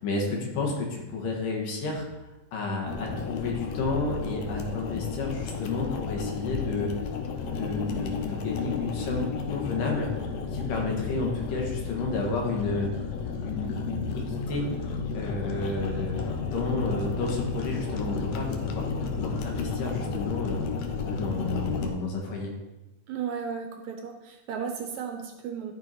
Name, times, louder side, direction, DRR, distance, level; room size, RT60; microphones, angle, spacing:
voice 1, 0.0-2.0 2.5-6.9 7.4-10.1 10.5-12.9 13.4-14.6 15.1-16.2 16.5-20.6 21.1-22.5, left 3 dB, 85° left, 0 dB, 3.2 m, -31 dB
sound 1, 2.9-21.9, left 5 dB, 70° left, 1.8 m, -32 dB
voice 2, 23.1-25.7, right 7 dB, 75° right, 4 dB, 1.9 m, -34 dB
12.5 x 4.7 x 4.2 m, 1.1 s
omnidirectional pair, 3.7 m